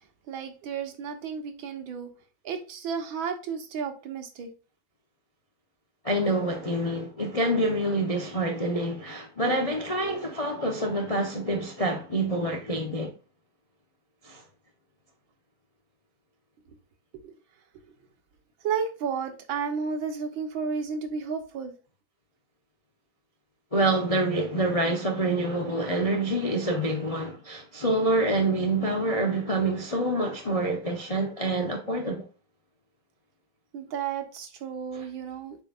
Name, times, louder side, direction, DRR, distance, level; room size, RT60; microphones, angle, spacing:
voice 1, 0.3-2.1 2.4-4.5 17.2-17.3 18.6-21.7 33.7-35.6, right 6 dB, 75° right, 1.9 m, -32 dB
voice 2, 6.0-13.1 14.2-14.4 23.7-32.3 34.9-35.1, right 1 dB, 35° left, 0.6 m, -27 dB
7.6 x 5.2 x 2.5 m
omnidirectional pair, 2.2 m